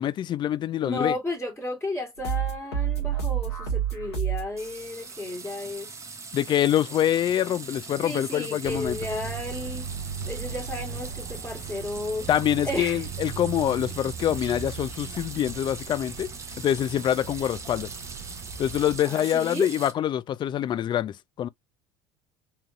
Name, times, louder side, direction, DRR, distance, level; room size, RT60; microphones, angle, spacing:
voice 1, 0.0-1.2 6.3-9.0 12.3-17.9 18.6-21.5, left 11 dB, 35° left, 0.4 m, -25 dB
voice 2, 0.8-5.9 8.0-9.9 10.2-12.3 12.6-13.0 19.0-19.7, left 2 dB, 15° left, 1.8 m, -33 dB
sound 1, 2.2-4.6, right 9 dB, 90° left, 1.7 m, -28 dB
sound 2, 4.6-19.9, right 4 dB, 20° right, 0.9 m, -41 dB
sound 3, 8.6-19.0, right 7 dB, 55° right, 0.6 m, -38 dB
3.8 x 2.8 x 2.5 m
hypercardioid pair, 70°, 14 cm